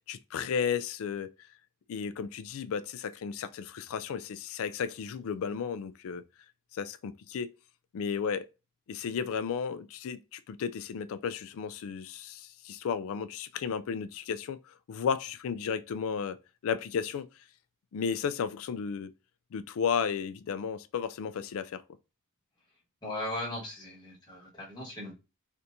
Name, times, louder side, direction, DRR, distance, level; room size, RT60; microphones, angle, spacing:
voice 1, 0.1-1.3 1.9-6.2 6.7-7.5 7.9-8.5 8.9-14.6 14.9-16.4 16.6-17.3 17.9-19.1 19.5-21.8, left 6 dB, 65° left, 0.3 m, -33 dB
voice 2, 23.0-25.1, left 1 dB, 20° left, 1.3 m, -38 dB
3.3 x 2.8 x 2.6 m
head